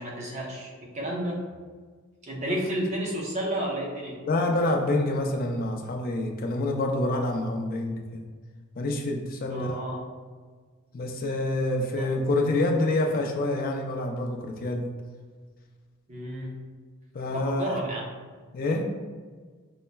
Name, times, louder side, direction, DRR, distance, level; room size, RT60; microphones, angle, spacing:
voice 1, 0.0-1.5 2.3-4.2 9.5-10.0 12.0-12.1 16.1-16.6 17.3-18.1, right 1 dB, 35° right, -3 dB, 0.7 m, -31 dB
voice 2, 4.2-8.2 8.8-9.8 10.9-14.9 17.1-17.8 18.5-18.9, left 2 dB, 45° left, 2 dB, 0.4 m, -27 dB
5.4 x 2.1 x 2.2 m, 1.5 s
head